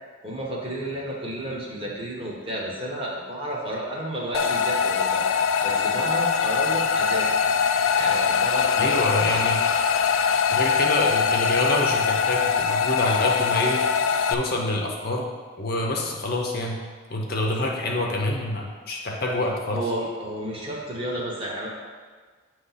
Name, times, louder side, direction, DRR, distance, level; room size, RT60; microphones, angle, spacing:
voice 1, 0.2-5.2 5.6-7.3 7.9-9.5 17.5-17.6 19.4-21.7, right 1 dB, 25° right, -3 dB, 1.1 m, -32 dB
sound 1, 4.3-14.3, left 6 dB, 75° left, 0.3 m, -22 dB
voice 2, 8.8-9.6 10.5-13.8 14.3-15.3 15.6-16.8 17.1-19.8, left 1 dB, 45° left, 0 dB, 0.8 m, -26 dB
8.0 x 3.1 x 5.6 m, 1.5 s
head